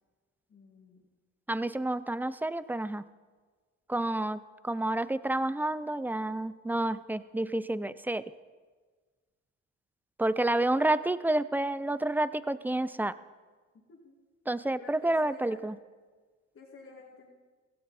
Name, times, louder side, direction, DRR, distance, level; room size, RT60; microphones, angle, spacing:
voice 1, 0.5-1.0 13.9-14.2 14.8-15.6 16.5-17.3, left 4 dB, 45° left, -4 dB, 2.3 m, -51 dB
voice 2, 1.5-3.0 3.9-8.2 10.2-13.1 14.5-15.8, right 1 dB, 5° right, 16 dB, 0.4 m, -29 dB
16.5 x 16.0 x 4.2 m, 1.4 s
cardioid pair, 105°, 29 cm